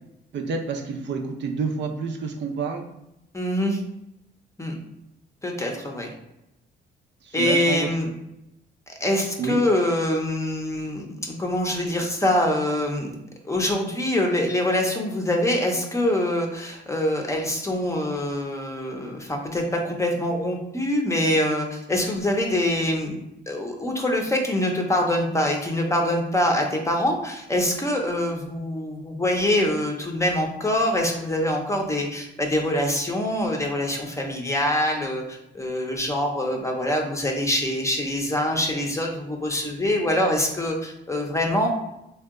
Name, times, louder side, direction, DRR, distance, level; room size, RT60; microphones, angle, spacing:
voice 1, 0.3-2.8 7.2-7.9 9.4-9.6, right 5 dB, 65° right, 2 dB, 0.5 m, -28 dB
voice 2, 3.3-3.8 4.6-4.8 5.4-6.1 7.3-8.1 9.0-13.2 13.4-23.2 23.5-41.7, left 1 dB, 15° left, 2 dB, 0.6 m, -24 dB
2.7 x 2.2 x 3.6 m, 0.86 s
cardioid pair, 90°, 20 cm